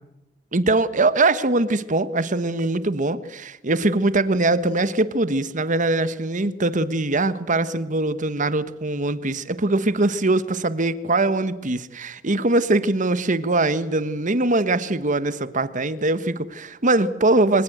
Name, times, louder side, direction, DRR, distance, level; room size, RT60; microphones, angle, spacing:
voice 1, 0.5-17.6, right 2 dB, 45° right, 14 dB, 1.3 m, -22 dB
23.0 x 20.0 x 8.0 m, 0.95 s
head